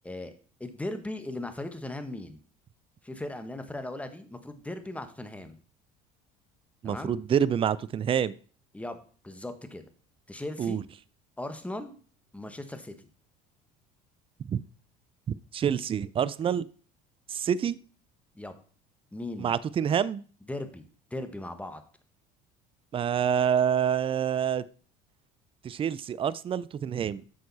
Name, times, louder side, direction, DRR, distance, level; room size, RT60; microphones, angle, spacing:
voice 1, 0.6-2.4 3.0-5.6 6.8-7.1 8.7-9.0 9.2-9.8 10.3-10.8 11.4-11.9 12.3-12.9 18.3-18.5 19.1-19.5 20.5-20.8 21.1-21.8, left 1 dB, 5° left, 8 dB, 1.3 m, -38 dB
voice 2, 6.8-8.3 10.6-10.8 14.5-14.6 15.5-16.7 17.3-17.8 19.4-20.2 22.9-24.6 25.6-27.2, right 8 dB, 30° right, 19 dB, 0.4 m, -27 dB
9.3 x 6.5 x 4.1 m, 0.41 s
supercardioid pair, 90°, 18 cm